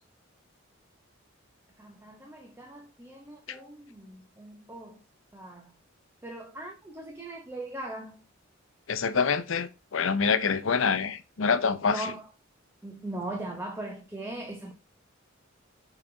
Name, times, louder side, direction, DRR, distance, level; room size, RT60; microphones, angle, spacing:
voice 1, 1.8-5.0 5.3-5.7 6.2-8.2 11.9-12.3 12.8-14.7, right 1 dB, 10° right, 1.0 m, -39 dB
voice 2, 8.9-12.1, left 5 dB, 75° left, 0.6 m, -26 dB
7.2 x 4.0 x 3.9 m
head